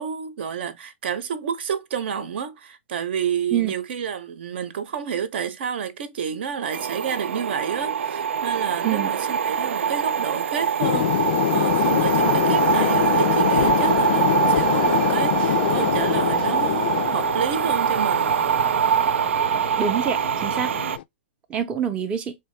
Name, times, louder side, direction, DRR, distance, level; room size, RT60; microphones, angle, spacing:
voice 1, 0.0-18.4, right 7 dB, 60° right, 0.8 m, -30 dB
sound 1, 6.7-21.0, right 7 dB, 85° right, 0.3 m, -23 dB
sound 2, 10.8-21.0, left 13 dB, 55° left, 0.3 m, -25 dB
voice 2, 19.8-20.7 21.5-22.4, right 8 dB, 15° right, 0.6 m, -25 dB
4.5 x 2.8 x 3.2 m
hypercardioid pair, 150°, 7 cm